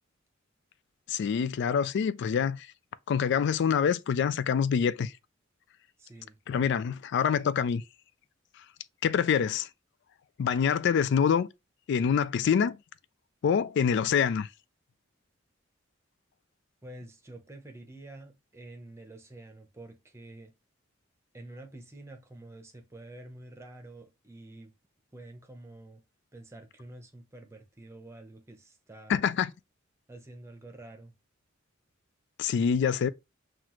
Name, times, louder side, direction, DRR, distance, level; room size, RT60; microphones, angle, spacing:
voice 1, 1.1-2.7 3.1-5.1 6.5-7.8 9.0-9.7 10.4-11.5 11.9-12.8 13.4-14.5 29.1-29.5 32.4-33.1, left 7 dB, 60° left, 0.3 m, -26 dB
voice 2, 6.0-6.4 16.8-20.5 21.3-24.7 25.1-26.0 26.3-29.3 30.1-31.1, right 2 dB, 15° right, 0.8 m, -48 dB
5.8 x 2.5 x 3.0 m
head